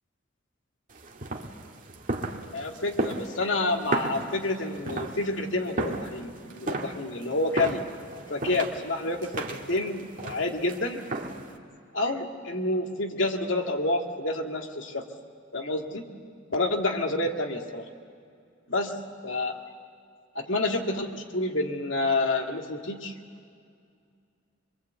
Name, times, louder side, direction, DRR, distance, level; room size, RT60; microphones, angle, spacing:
sound 1, 0.9-11.6, right 2 dB, 45° right, 1.9 m, -35 dB
voice 1, 2.5-7.8 8.3-11.1 11.9-15.0 15.5-16.1 16.5-17.9 18.7-19.0 19.2-19.6 20.3-23.1, left 2 dB, 80° left, 2 dB, 2.2 m, -29 dB
24.5 x 23.0 x 8.2 m, 2.3 s
head